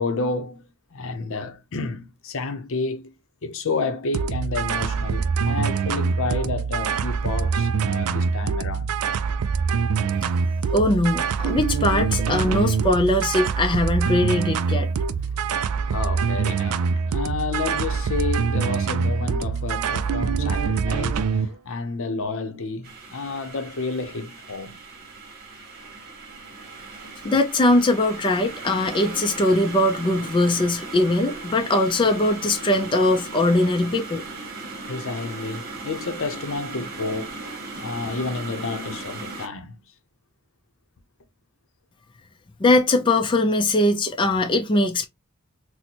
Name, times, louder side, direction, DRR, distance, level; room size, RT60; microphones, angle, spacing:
voice 1, 0.0-3.1 3.4-8.9 15.2-24.8 34.9-37.4 37.8-39.8, left 3 dB, 65° left, 0.6 m, -30 dB
sound 1, 4.1-21.5, right 5 dB, 85° right, 0.4 m, -24 dB
voice 2, 10.7-14.9 27.2-34.2 42.6-45.1, left 2 dB, 20° left, 0.4 m, -21 dB
sound 2, 22.8-39.5, right 3 dB, 45° right, 1.0 m, -37 dB
4.1 x 2.1 x 2.8 m
head